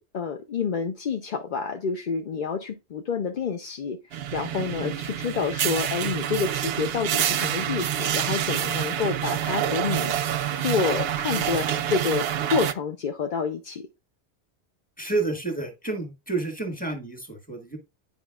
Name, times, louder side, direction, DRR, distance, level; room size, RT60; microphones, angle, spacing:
voice 1, 0.0-4.0 4.3-13.9, left 5 dB, 50° left, 0.7 m, -28 dB
sound 1, 4.1-12.7, right 10 dB, 65° right, 0.8 m, -27 dB
voice 2, 15.0-17.8, right 3 dB, 5° left, 1.6 m, -30 dB
9.9 x 5.1 x 2.4 m
omnidirectional pair, 1.2 m